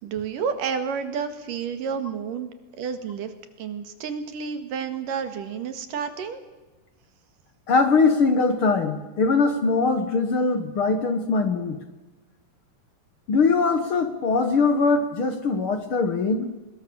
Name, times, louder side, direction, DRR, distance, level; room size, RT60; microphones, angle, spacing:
voice 1, 0.0-2.5 2.8-3.3 3.6-6.4, right 6 dB, 85° right, 9 dB, 3.5 m, -30 dB
voice 2, 7.7-11.8 13.3-16.5, left 4 dB, 50° left, 9 dB, 1.8 m, -21 dB
23.5 x 21.5 x 7.0 m, 1.1 s
omnidirectional pair, 3.7 m